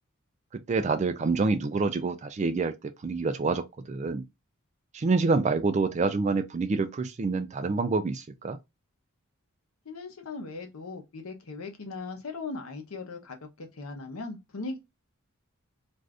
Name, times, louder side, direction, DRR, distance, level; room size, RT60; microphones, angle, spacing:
voice 1, 0.7-4.2 4.9-8.6, right 4 dB, 35° right, 0.3 m, -27 dB
voice 2, 9.8-14.8, left 3 dB, 80° left, 0.8 m, -39 dB
2.6 x 2.4 x 3.3 m
head